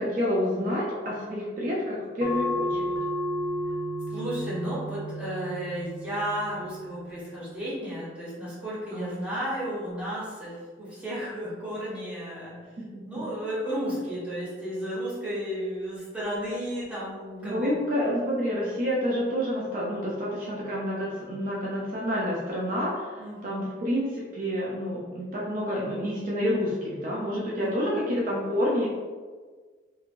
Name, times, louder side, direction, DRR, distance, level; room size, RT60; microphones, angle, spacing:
voice 1, 0.0-2.8 8.9-9.1 12.9-13.0 17.4-23.1 23.4-28.9, equal, 50° right, -5 dB, 0.5 m, -28 dB
sound 1, 2.2-7.3, equal, 85° left, 0.5 m, -32 dB
voice 2, 4.1-12.6 13.1-17.8 23.2-23.7 27.6-28.1, equal, 5° right, -10 dB, 1.0 m, -33 dB
2.9 x 2.6 x 2.5 m, 1.5 s
head